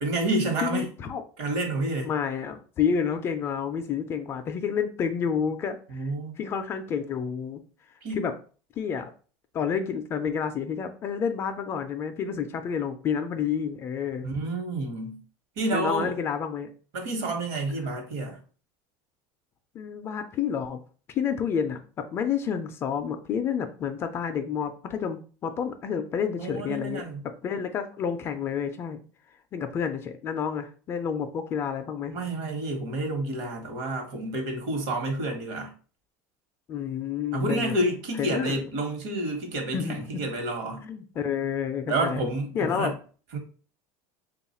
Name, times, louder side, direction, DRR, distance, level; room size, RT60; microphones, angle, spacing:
voice 1, 0.0-0.9 1.4-2.1 5.9-6.3 8.0-8.3 14.2-15.2 15.6-16.2 16.9-18.4 26.4-27.2 32.1-35.7 37.3-40.8 41.9-42.9 43.3-43.4, right 2 dB, 60° right, 1.1 m, -29 dB
voice 2, 0.6-1.2 2.0-6.0 6.4-7.6 8.1-8.3 8.8-9.1 9.5-14.2 15.7-16.7 19.7-20.8 21.1-27.0 27.4-29.0 29.5-32.2 36.7-37.7 38.2-38.6 39.7-40.2 40.8-42.2 42.5-42.9, left 7 dB, 25° left, 0.3 m, -29 dB
3.4 x 2.3 x 4.2 m
cardioid pair, 160°, 9 cm